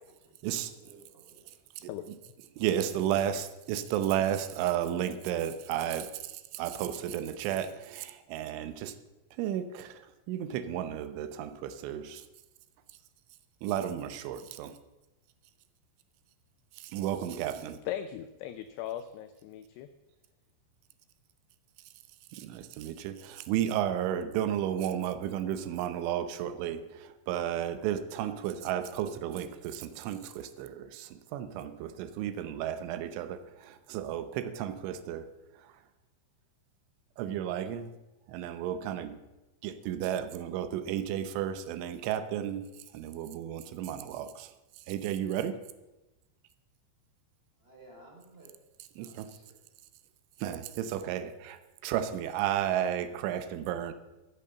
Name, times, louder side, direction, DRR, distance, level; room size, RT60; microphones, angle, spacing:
voice 1, 0.7-1.5 47.6-48.5 49.0-49.5 50.9-51.2, right 2 dB, 15° right, -1 dB, 3.1 m, -56 dB
voice 2, 2.6-6.1 6.5-8.9 9.4-10.0 10.3-12.2 13.6-14.7 16.8-17.8 22.3-35.3 37.2-37.9 38.3-39.2 39.6-42.6 42.9-44.5 44.9-45.6 49.0-49.3 50.4-53.9, right 10 dB, 80° right, 11 dB, 3.2 m, -33 dB
voice 3, 17.9-19.9, left 11 dB, 85° left, 10 dB, 2.3 m, -38 dB
14.0 x 8.6 x 6.9 m, 1.0 s
omnidirectional pair, 5.5 m